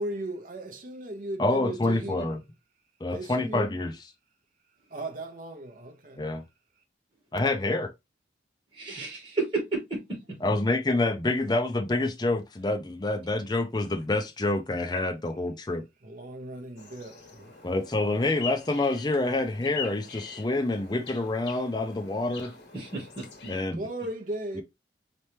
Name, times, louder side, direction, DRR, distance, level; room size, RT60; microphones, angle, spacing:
voice 1, 0.0-2.3 3.1-3.7 4.9-6.2 16.0-17.6 23.7-24.6, right 1 dB, 45° right, 0.7 m, -36 dB
voice 2, 1.4-2.4 3.0-3.9 6.2-6.4 7.3-7.9 10.4-15.8 17.6-22.5 23.5-23.8 24.5-24.6, left 2 dB, 20° left, 0.5 m, -27 dB
voice 3, 8.7-10.4 22.7-23.5, right 3 dB, 30° right, 2.1 m, -32 dB
sound 1, 16.8-23.6, left 6 dB, 70° left, 1.3 m, -43 dB
4.2 x 3.0 x 3.3 m
head